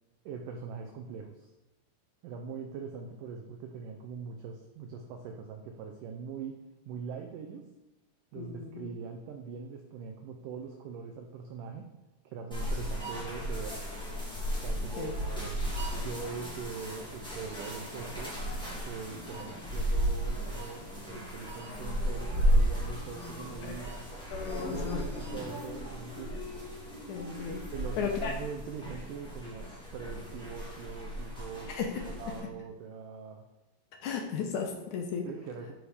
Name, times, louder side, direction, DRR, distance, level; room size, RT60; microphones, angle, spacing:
voice 1, 0.3-1.5 2.2-7.7 8.3-11.9 12.3-14.0 14.6-18.4 18.8-24.1 24.5-24.7 25.0-26.5 27.7-31.8 32.1-33.4 35.3-35.7, right 5 dB, 75° right, 3 dB, 2.0 m, -42 dB
voice 2, 8.3-8.9 15.0-15.1 23.6-23.8 24.3-25.0 27.1-27.6 28.0-28.3 31.7-32.0 34.0-35.3, left 6 dB, 75° left, 2 dB, 1.9 m, -35 dB
sound 1, 12.5-32.4, equal, 5° left, 0.7 m, -34 dB
7.9 x 5.0 x 4.9 m, 1.0 s
omnidirectional pair, 4.3 m